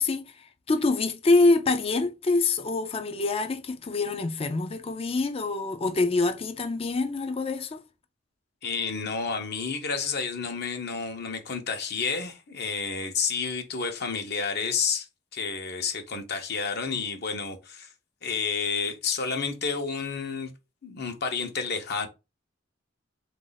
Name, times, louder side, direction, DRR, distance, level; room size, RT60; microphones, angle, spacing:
voice 1, 0.0-7.8, left 3 dB, 30° left, 0.5 m, -25 dB
voice 2, 8.6-17.9 18.2-20.5 20.8-22.1, left 5 dB, 55° left, 0.9 m, -30 dB
4.0 x 2.6 x 3.9 m
head